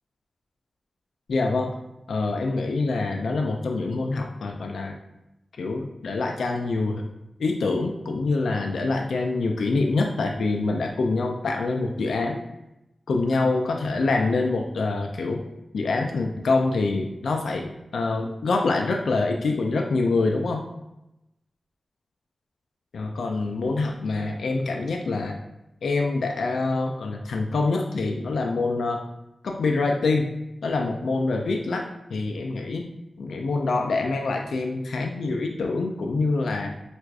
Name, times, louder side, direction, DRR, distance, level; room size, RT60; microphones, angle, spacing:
voice 1, 1.3-1.7 2.1-5.0 5.6-7.0 7.4-12.4 13.1-15.4 15.7-20.7 22.9-25.4 25.8-29.0 29.4-30.3 30.6-32.9 33.2-36.7, left 3 dB, 85° left, 2 dB, 0.3 m, -25 dB
4.5 x 2.4 x 2.3 m, 0.90 s
cardioid pair, 60°, 0 cm